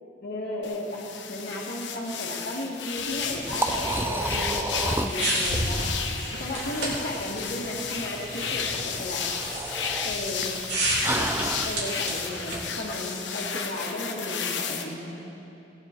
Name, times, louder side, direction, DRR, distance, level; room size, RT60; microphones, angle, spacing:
voice 1, 0.2-1.0 1.3-5.8 6.4-9.2 10.0-10.6 11.2-11.3 11.6-15.3, left 1 dB, 65° left, -5 dB, 1.7 m, -34 dB
sound 1, 0.6-14.8, left 6 dB, 80° left, 0.9 m, -33 dB
Liquid, 3.0-11.7, right 2 dB, 15° right, 0.4 m, -33 dB
sound 2, 3.1-12.7, right 1 dB, 70° right, 3.1 m, -33 dB
17.5 x 9.6 x 4.4 m, 3.0 s
head